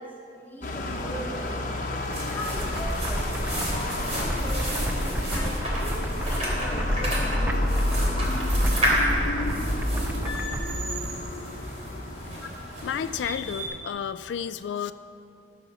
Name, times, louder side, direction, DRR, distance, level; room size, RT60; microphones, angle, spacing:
voice 1, 0.0-1.6 2.3-4.8 5.3-8.2 12.3-12.6, left 1 dB, 10° left, -6 dB, 2.0 m, -40 dB
sound 1, 0.6-13.4, left 1 dB, 45° left, 1.0 m, -30 dB
sound 2, 1.9-13.7, equal, 40° right, 3.1 m, -32 dB
sound 3, 2.5-10.8, right 1 dB, 10° right, 0.4 m, -32 dB
voice 2, 12.8-14.9, left 8 dB, 85° left, 12 dB, 0.3 m, -31 dB
15.5 x 5.2 x 6.8 m, 2.5 s
head